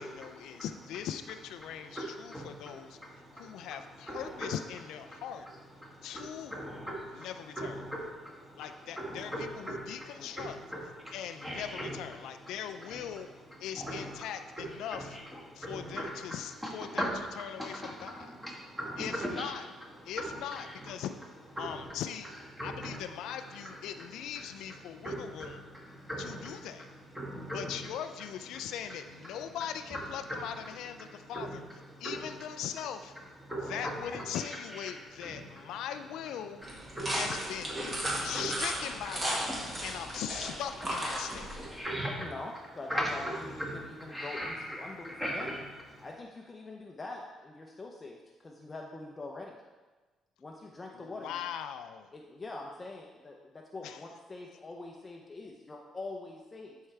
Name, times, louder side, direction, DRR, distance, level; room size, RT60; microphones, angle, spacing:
voice 1, 0.0-3.0 3.3-5.5 6.0-6.6 7.1-7.8 8.6-10.6 11.1-13.3 13.6-15.2 15.5-17.1 17.4-18.4 19.0-19.7 20.0-21.1 21.6-22.3 22.6-25.6 26.2-26.9 27.5-31.6 32.0-33.1 33.7-36.6 37.1-37.7 38.2-41.5 50.9-52.1 53.8-54.0, left 9 dB, 80° left, 9 dB, 0.4 m, -40 dB
voice 2, 1.9-3.7 4.1-4.5 5.1-5.2 5.8-7.3 7.6-8.7 9.0-10.1 10.4-11.1 11.4-12.0 12.9-13.0 13.8-14.2 14.6-15.2 15.5-16.4 16.6-17.2 17.6-19.5 20.2-20.7 21.6-21.9 22.5-23.0 23.4-23.8 25.0-26.7 27.1-27.8 29.9-30.0 30.3-30.5 31.0-31.6 31.9-32.3 33.5-34.4 34.7-34.9 35.2-35.5 36.6-37.4 37.7-38.5 39.5-39.8 40.8-40.9 41.1-41.2 41.5-42.3 42.9-45.6 45.9-46.1, equal, 5° right, -3 dB, 1.7 m, -39 dB
sound 1, 36.6-41.8, right 1 dB, 25° right, 1.8 m, -35 dB
voice 3, 41.9-45.6 46.0-49.6 50.4-51.4 52.1-56.8, left 2 dB, 25° left, 0 dB, 0.6 m, -44 dB
11.0 x 4.6 x 3.3 m, 1.2 s
cardioid pair, 115°, 0 cm